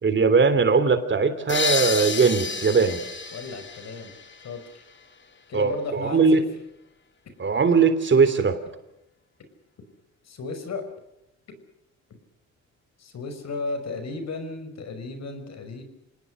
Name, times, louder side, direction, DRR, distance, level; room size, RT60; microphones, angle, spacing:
voice 1, 0.0-3.0 5.5-6.4 7.4-8.6, right 5 dB, 40° right, 11 dB, 3.1 m, -20 dB
sound 1, 1.5-5.0, left 5 dB, 40° left, 2.9 m, -30 dB
voice 2, 3.3-4.1 4.4-4.6 5.5-6.4 10.3-10.8 13.0-15.8, left 3 dB, 60° left, 8 dB, 5.9 m, -34 dB
27.5 x 19.5 x 6.5 m, 0.84 s
cardioid pair, 90°, 30 cm